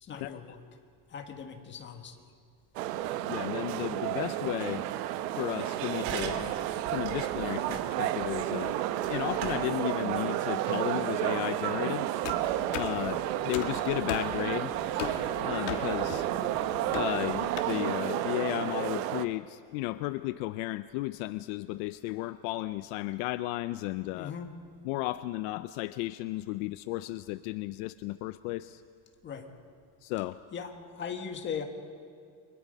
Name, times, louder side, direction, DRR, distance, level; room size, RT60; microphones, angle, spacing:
voice 1, 0.0-0.6 1.1-2.3 24.1-24.5 29.2-29.5 30.5-31.6, left 7 dB, 25° left, 4 dB, 1.6 m, -39 dB
sound 1, 2.8-19.3, right 13 dB, 85° right, 1.1 m, -31 dB
voice 2, 3.3-4.8 5.4-6.5 6.9-8.7 9.1-12.1 12.7-14.7 15.4-16.3 16.9-24.3 24.9-28.8 30.0-30.4, left 18 dB, 65° left, 13 dB, 0.6 m, -34 dB
sound 2, 6.0-11.3, right 7 dB, 55° right, 2.4 m, -43 dB
sound 3, 12.2-17.6, left 10 dB, 80° left, 1.9 m, -39 dB
30.0 x 24.0 x 5.3 m, 2.3 s
cardioid pair, 175°, 47 cm